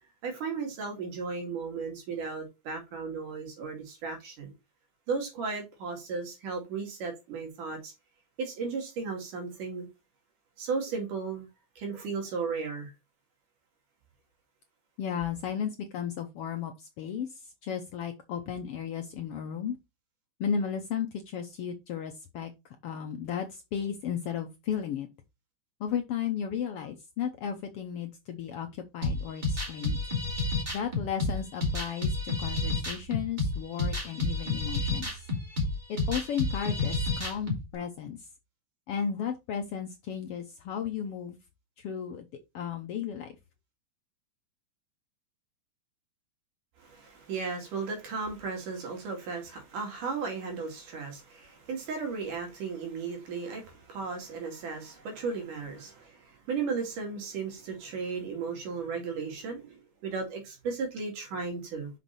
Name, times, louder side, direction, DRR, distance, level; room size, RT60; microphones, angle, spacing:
voice 1, 0.2-4.5 5.1-7.9 8.4-9.9 10.6-11.5 11.8-12.9 46.8-61.9, right 5 dB, 85° right, 3.9 m, -35 dB
voice 2, 15.0-17.3 17.6-19.8 20.4-22.5 22.8-25.1 25.8-30.0 30.7-35.2 35.9-38.2 38.9-41.4 41.8-42.3 42.5-43.3, left 8 dB, 70° left, 1.4 m, -34 dB
sound 1, 29.0-37.6, left 2 dB, 15° right, 2.2 m, -30 dB
6.1 x 6.0 x 4.0 m
omnidirectional pair, 3.5 m